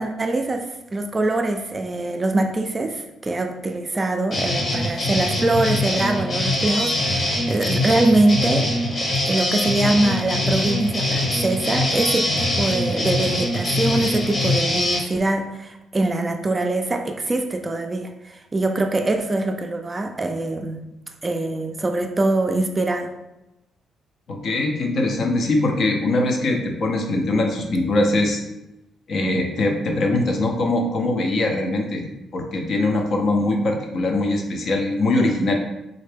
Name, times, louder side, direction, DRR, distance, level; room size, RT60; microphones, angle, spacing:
voice 1, 0.0-8.7 9.3-20.8 21.2-23.1, right 2 dB, 25° right, 5 dB, 0.3 m, -23 dB
sound 1, 4.3-15.0, left 1 dB, 45° left, 1.0 m, -23 dB
voice 2, 24.3-28.4 29.1-32.1 32.3-35.6, left 2 dB, 60° left, 2 dB, 0.6 m, -22 dB
3.7 x 2.1 x 3.3 m, 0.93 s
cardioid pair, 90°, 0 cm